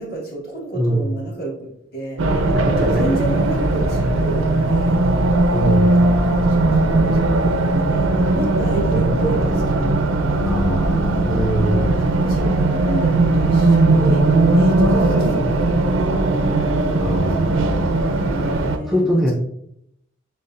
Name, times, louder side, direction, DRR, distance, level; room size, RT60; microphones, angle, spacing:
voice 1, 0.0-5.0 5.4-8.1 8.3-16.2 16.8-19.2, right 1 dB, 50° left, -4 dB, 1.5 m, -31 dB
voice 2, 0.8-1.1 2.7-3.0 5.5-6.0 10.4-11.9 17.0-18.1 18.3-18.6 18.9-19.3, equal, ahead, -1 dB, 0.4 m, -23 dB
Race car auto racing, 2.2-18.8, right 2 dB, 90° right, 0.5 m, -18 dB
6.6 x 2.4 x 2.5 m, 0.77 s
head